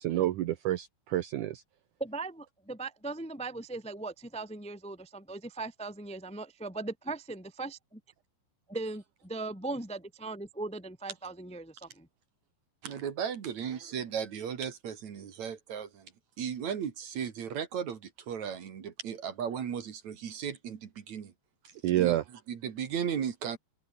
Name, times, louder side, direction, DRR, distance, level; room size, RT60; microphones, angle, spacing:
voice 1, 0.0-1.6 21.8-22.2, right 14 dB, 80° right, 1.7 m, -28 dB
voice 2, 2.0-8.0 8.7-12.1, right 3 dB, 5° left, 1.2 m, -39 dB
voice 3, 12.8-16.1 16.4-21.3 21.9-23.6, right 8 dB, 50° right, 2.8 m, -36 dB
omnidirectional pair, 5.0 m